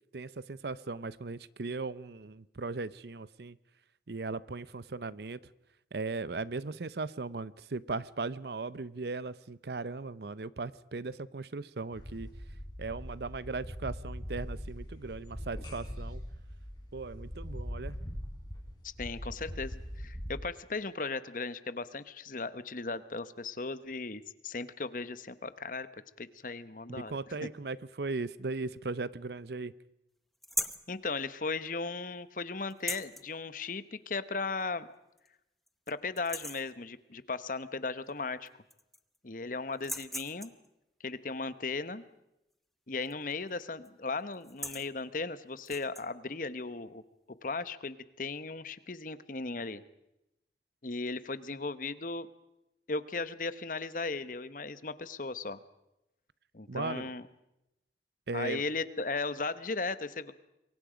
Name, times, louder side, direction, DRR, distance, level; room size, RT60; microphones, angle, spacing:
voice 1, 0.1-3.6 4.1-5.4 5.9-12.3 12.8-16.2 16.9-18.0 26.9-29.7 56.7-57.1 58.3-58.6, right 3 dB, 65° right, 18 dB, 0.7 m, -38 dB
sound 1, 11.9-20.3, equal, 25° left, 5.6 m, -41 dB
voice 2, 18.8-25.9 26.2-27.1 27.4-27.5 30.9-34.9 35.9-38.5 39.2-40.5 41.0-42.1 42.9-47.0 47.4-49.8 50.8-52.3 52.9-55.6 56.5-57.3 58.3-60.3, left 3 dB, 50° left, 14 dB, 1.0 m, -36 dB
sound 2, 30.4-30.9 32.7-33.3 34.6-34.7 35.2-35.3 35.7-35.9 36.2-36.7 38.1-38.2 38.5-39.2 39.7-40.7 43.0-43.3 43.6-43.9 44.3-44.9 45.6-46.1, equal, ahead, 0.8 m, -38 dB
27.0 x 23.0 x 5.1 m, 0.89 s
head